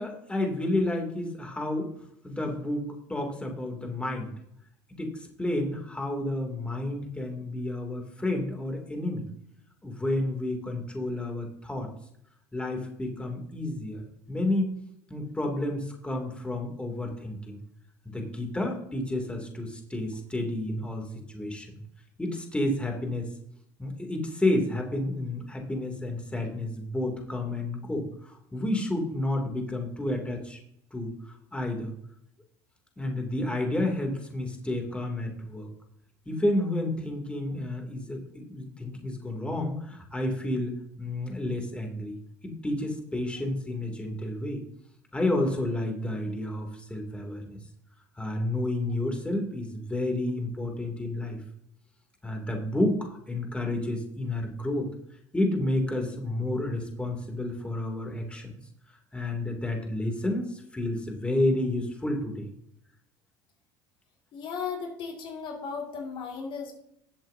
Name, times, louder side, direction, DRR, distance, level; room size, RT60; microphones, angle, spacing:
voice 1, 0.0-1.9 2.2-4.3 4.9-9.3 9.8-11.9 12.5-14.8 15.1-17.6 18.0-21.8 22.2-23.3 23.8-30.6 30.9-31.9 33.0-35.7 36.3-42.2 42.4-44.6 45.1-47.6 48.2-51.4 52.2-54.9 55.3-58.5 59.1-62.5, left 1 dB, 10° left, 2 dB, 2.8 m, -30 dB
voice 2, 64.3-66.7, left 5 dB, 50° left, 1 dB, 2.4 m, -35 dB
19.5 x 7.9 x 2.8 m, 0.74 s
supercardioid pair, 90°, 10 cm